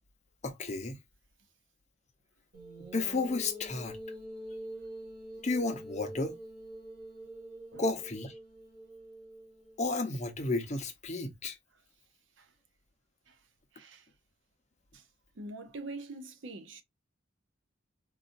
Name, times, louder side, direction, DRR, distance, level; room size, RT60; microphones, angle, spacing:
voice 1, 0.4-1.0 2.9-4.0 5.4-6.4 7.8-8.3 9.8-11.5, left 3 dB, 35° left, 0.7 m, -32 dB
sound 1, 2.5-9.9, right 1 dB, 50° right, 1.7 m, -45 dB
voice 2, 13.7-14.1 14.9-15.0 15.4-16.8, right 2 dB, 65° right, 0.7 m, -44 dB
4.0 x 2.5 x 2.5 m
head